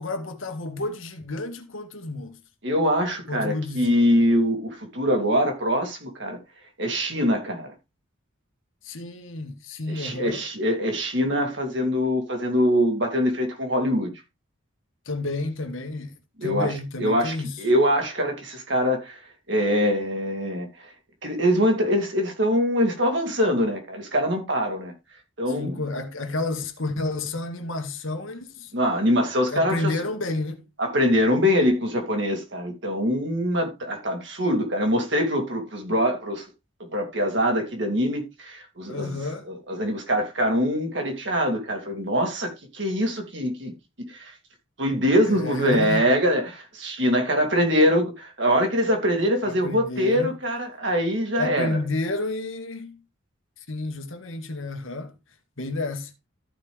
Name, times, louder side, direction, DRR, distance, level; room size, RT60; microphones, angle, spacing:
voice 1, 0.0-2.4 3.3-4.1 8.8-10.4 15.1-16.1 16.4-17.6 25.6-28.7 29.5-30.7 38.9-39.5 45.2-46.1 49.4-50.4 51.4-53.0 53.7-55.2 55.6-56.1, left 2 dB, 80° left, 1.7 m, -30 dB
voice 2, 2.6-6.4 6.8-7.7 9.9-14.1 16.4-16.7 17.0-19.2 19.5-20.9 21.2-24.9 25.4-25.7 28.7-29.9 30.8-36.4 36.9-39.2 39.5-43.7 44.1-44.3 44.8-51.8, equal, 60° right, 3.0 m, -23 dB
14.0 x 5.3 x 3.6 m
head